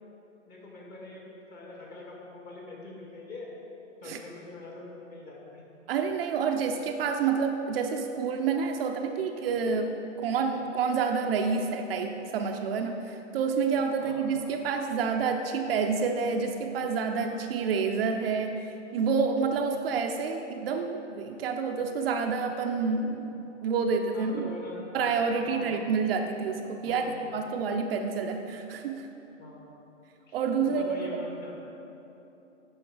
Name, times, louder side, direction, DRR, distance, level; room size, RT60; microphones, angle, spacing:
voice 1, 0.5-1.2 1.5-3.5 4.0-5.6 14.0-14.3 24.1-24.8 25.4-25.9 26.8-27.2 27.4-27.6 29.4-29.6 30.3-31.5, left 2 dB, 25° left, -3 dB, 1.7 m, -43 dB
voice 2, 5.9-23.3 23.6-24.5 24.9-27.0 27.3-29.1 30.3-31.2, right 5 dB, 50° right, 4 dB, 0.6 m, -28 dB
8.7 x 5.6 x 4.8 m, 3.0 s
hypercardioid pair, 130°, 37 cm